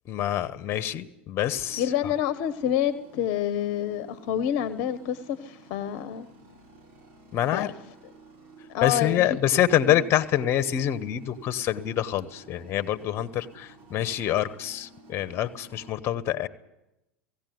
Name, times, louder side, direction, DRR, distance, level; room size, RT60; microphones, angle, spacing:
voice 1, 0.0-2.1 7.3-7.7 8.8-16.5, left 11 dB, 40° left, 12 dB, 1.5 m, -26 dB
sound 1, 1.5-15.9, right 3 dB, 50° right, 6.1 m, -52 dB
voice 2, 1.8-6.3 7.5-7.7 8.7-9.2 9.9-10.0, left 10 dB, 60° left, 13 dB, 1.2 m, -28 dB
18.0 x 17.0 x 9.5 m, 0.93 s
hypercardioid pair, 90°, 6 cm